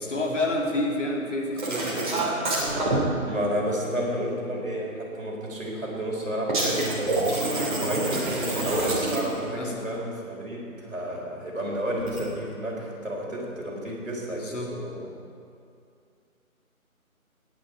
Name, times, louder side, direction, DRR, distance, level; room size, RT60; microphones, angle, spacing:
voice 1, 0.0-2.3 8.3-8.8 9.6-9.9 13.9-14.0 14.3-14.7, left 1 dB, 55° left, -1 dB, 2.5 m, -30 dB
sound 1, 1.6-3.0 6.5-9.4 12.0-12.2, right 2 dB, 35° right, 2.9 m, -27 dB
voice 2, 3.3-7.3 7.7-8.3 8.6-15.1, equal, 60° right, -2 dB, 4.0 m, -31 dB
18.5 x 9.3 x 4.6 m, 2.4 s
figure-of-eight pair, 160°, 43 cm